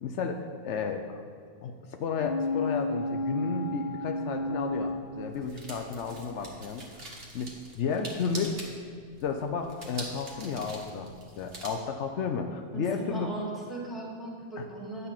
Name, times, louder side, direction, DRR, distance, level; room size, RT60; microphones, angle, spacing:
voice 1, 0.0-1.2 1.6-8.6 9.2-11.1 11.4-13.3, left 5 dB, 75° left, 4 dB, 0.9 m, -33 dB
sound 1, 2.2-5.9 6.3-6.4, left 1 dB, 45° left, 0.6 m, -32 dB
sound 2, 4.3-11.7, right 2 dB, 55° right, 1.6 m, -45 dB
voice 2, 12.7-15.1, right 2 dB, ahead, -5 dB, 1.9 m, -38 dB
10.0 x 4.1 x 7.3 m, 2.2 s
omnidirectional pair, 1.2 m